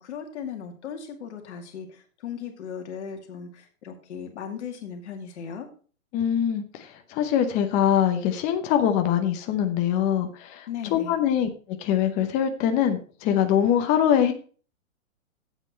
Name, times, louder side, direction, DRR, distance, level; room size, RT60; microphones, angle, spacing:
voice 1, 0.0-5.7 10.7-11.2, left 7 dB, 55° left, 4 dB, 2.3 m, -37 dB
voice 2, 6.1-11.5 11.8-14.3, left 9 dB, 20° left, 7 dB, 0.7 m, -23 dB
8.9 x 7.9 x 4.2 m, 0.40 s
hypercardioid pair, 140°, 42 cm